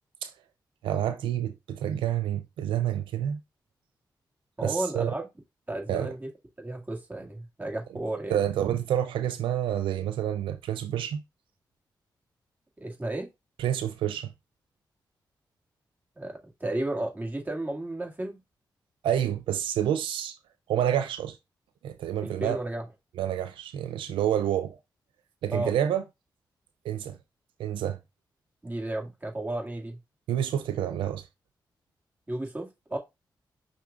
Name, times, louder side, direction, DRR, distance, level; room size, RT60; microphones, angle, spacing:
voice 1, 0.8-3.4 4.6-5.1 5.9-6.1 8.3-11.2 13.6-14.3 19.0-20.4 20.7-21.4 21.8-22.6 23.2-24.8 25.4-26.0 26.8-27.1 27.6-28.0 30.3-31.2, right 10 dB, 90° right, 0.4 m, -28 dB
voice 2, 4.6-5.3 5.7-6.3 6.6-8.4 12.8-13.3 16.2-18.4 22.2-22.8 25.5-25.7 28.6-30.0 32.3-33.0, right 1 dB, 20° right, 2.0 m, -33 dB
5.6 x 2.4 x 3.6 m
supercardioid pair, 50°, 8 cm